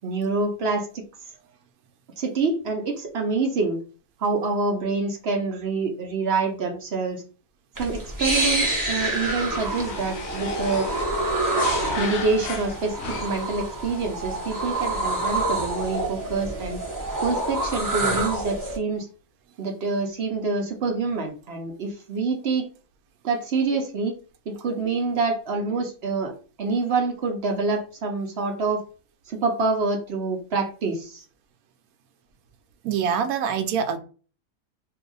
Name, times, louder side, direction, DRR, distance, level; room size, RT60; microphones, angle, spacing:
voice 1, 0.0-1.0 2.2-3.8 4.2-7.2 7.8-10.9 11.9-16.8 17.2-19.1 19.6-22.7 23.2-24.1 24.5-26.3 26.6-28.8 29.3-31.2, right 4 dB, 60° right, 2 dB, 0.7 m, -26 dB
sound 1, 7.8-18.8, right 2 dB, 20° right, 0.6 m, -27 dB
sound 2, 9.0-13.6, left 5 dB, 65° left, 0.7 m, -36 dB
voice 2, 32.8-34.0, right 7 dB, 80° right, 8 dB, 1.0 m, -24 dB
2.7 x 2.3 x 3.8 m, 0.37 s
omnidirectional pair, 1.5 m